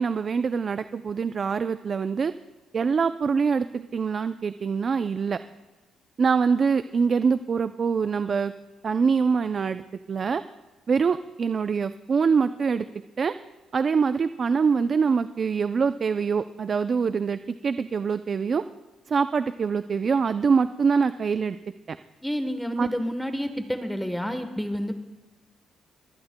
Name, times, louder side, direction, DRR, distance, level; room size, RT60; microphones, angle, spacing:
voice 1, 0.0-2.3 2.7-5.4 6.2-8.5 8.8-9.8 10.1-10.4 10.9-12.9 13.2-13.3 13.7-18.6 19.1-21.6 21.9-22.0 22.8-22.9, right 5 dB, 45° right, 11 dB, 0.4 m, -24 dB
voice 2, 22.2-25.0, equal, ahead, 7 dB, 1.1 m, -29 dB
23.5 x 18.5 x 2.2 m, 1.2 s
cardioid pair, 90°, 0 cm